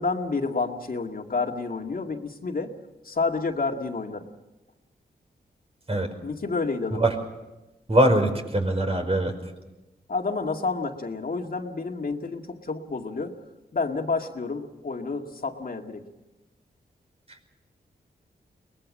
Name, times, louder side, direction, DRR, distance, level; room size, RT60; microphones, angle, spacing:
voice 1, 0.0-2.7 3.0-4.3 6.2-7.1 10.1-13.3 13.7-16.1, left 4 dB, 55° left, 3 dB, 2.2 m, -29 dB
voice 2, 7.9-9.3, right 1 dB, 35° right, 4 dB, 5.0 m, -22 dB
23.0 x 20.0 x 7.5 m, 1.0 s
cardioid pair, 60°, 18 cm